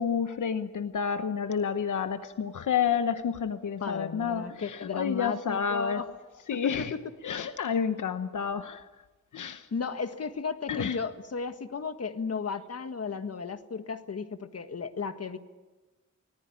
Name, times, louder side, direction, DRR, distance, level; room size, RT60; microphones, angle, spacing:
voice 1, 0.0-6.0 6.5-6.9 7.2-8.9 9.3-9.7 10.7-11.0, left 7 dB, 85° left, 10 dB, 1.0 m, -30 dB
voice 2, 3.8-6.1 6.5-7.1 9.7-15.4, left 5 dB, 55° left, 9 dB, 1.6 m, -34 dB
25.5 x 19.0 x 9.9 m, 1.2 s
wide cardioid pair, 110°, 30 cm